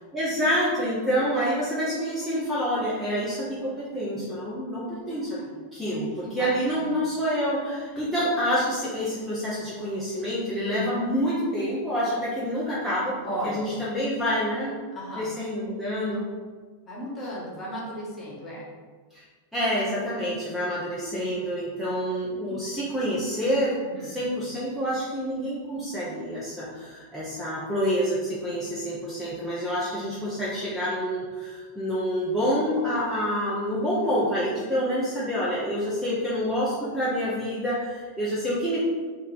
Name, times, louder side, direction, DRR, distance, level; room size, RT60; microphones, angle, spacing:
voice 1, 0.1-5.4 5.7-13.2 13.4-14.8 15.2-16.2 19.1-19.2 19.5-38.8, equal, 5° right, -9 dB, 0.8 m, -27 dB
voice 2, 5.8-6.5 10.6-11.0 13.2-13.7 14.9-15.3 16.9-18.7 22.5-22.6 23.8-24.2, equal, 20° left, -6 dB, 1.2 m, -35 dB
3.2 x 2.7 x 4.1 m, 1.5 s
figure-of-eight pair, 90°, 0 cm